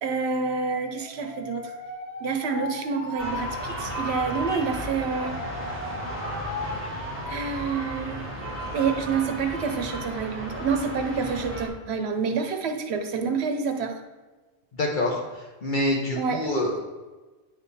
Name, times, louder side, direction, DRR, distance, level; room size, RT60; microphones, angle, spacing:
voice 1, 0.0-1.7 2.2-5.4 7.3-8.3 8.7-14.0 16.2-16.5, right 5 dB, 75° right, 6 dB, 0.9 m, -28 dB
Alarm, 0.6-7.9 8.2-8.8, left 2 dB, 15° left, 1.2 m, -38 dB
sound 1, 3.2-11.7, equal, 10° right, 1.6 m, -34 dB
voice 2, 14.8-15.2 15.6-16.8, left 1 dB, 50° left, -1 dB, 1.0 m, -25 dB
9.1 x 3.5 x 4.1 m, 1.2 s
omnidirectional pair, 1.1 m